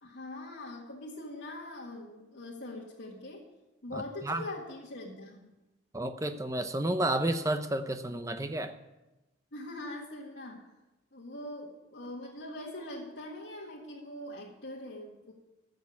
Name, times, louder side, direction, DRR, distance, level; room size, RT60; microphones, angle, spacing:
voice 1, 0.0-3.5 3.8-5.5 9.5-10.6 11.1-15.3, left 1 dB, 75° left, -4 dB, 1.9 m, -42 dB
voice 2, 3.9-4.5 5.9-8.7, right 1 dB, 15° right, 8 dB, 0.7 m, -31 dB
15.5 x 6.6 x 8.5 m, 1.0 s
head